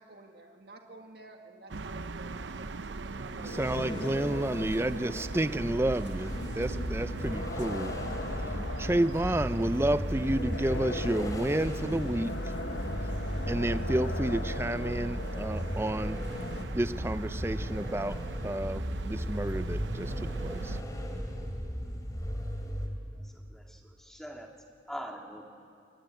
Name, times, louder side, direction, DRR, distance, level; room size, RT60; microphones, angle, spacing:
voice 1, 0.0-3.6, right 2 dB, 60° right, 3 dB, 1.9 m, -51 dB
sound 1, 1.7-20.8, right 3 dB, 85° right, 0.7 m, -40 dB
sound 2, 3.4-16.6, left 2 dB, 75° left, 1.2 m, -40 dB
voice 2, 3.4-8.0 8.8-12.3 13.5-16.2 16.7-20.8, right 1 dB, 15° right, 13 dB, 0.5 m, -30 dB
sound 3, 6.2-22.9, equal, 20° left, 2.8 m, -36 dB
voice 3, 23.3-24.5 24.9-25.5, equal, ahead, 1 dB, 2.1 m, -43 dB
24.0 x 21.0 x 9.2 m, 2.4 s
head